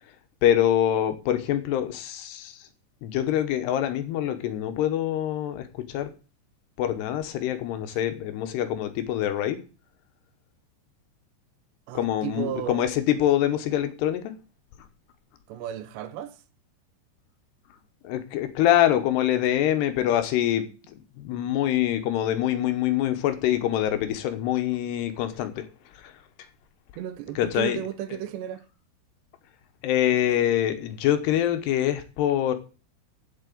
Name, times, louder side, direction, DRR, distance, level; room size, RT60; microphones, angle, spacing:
voice 1, 0.4-2.7 3.0-6.1 6.8-9.6 11.9-14.3 18.0-25.7 25.9-26.1 27.4-27.8 29.8-32.5, left 11 dB, 75° left, 2.9 m, -25 dB
voice 2, 11.9-12.8 15.5-16.4 27.0-28.6, right 11 dB, 80° right, 3.0 m, -34 dB
8.4 x 7.4 x 8.3 m
omnidirectional pair, 5.1 m